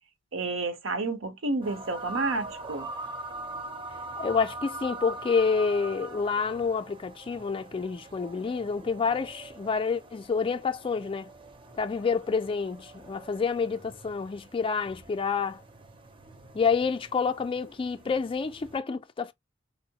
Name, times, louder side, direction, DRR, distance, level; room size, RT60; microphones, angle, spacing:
voice 1, 0.3-2.9, right 3 dB, 75° right, 0.7 m, -30 dB
sound 1, 1.6-18.8, right 2 dB, 25° right, 0.5 m, -43 dB
voice 2, 4.2-11.3 11.8-15.6 16.5-19.3, left 5 dB, 25° left, 0.3 m, -28 dB
4.3 x 2.0 x 2.7 m
head